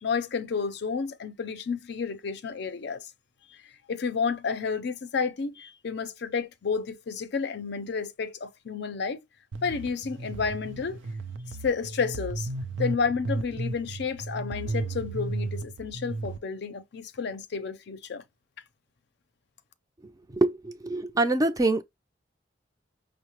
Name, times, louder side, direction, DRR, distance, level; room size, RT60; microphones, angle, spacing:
voice 1, 0.0-3.1 3.9-9.2 9.6-11.0 11.6-12.5 12.8-18.2, left 5 dB, 65° left, 0.5 m, -31 dB
sound 1, 9.5-16.4, right 2 dB, 90° right, 0.5 m, -34 dB
voice 2, 20.3-21.8, right 2 dB, 20° right, 0.4 m, -25 dB
5.4 x 2.0 x 2.9 m
head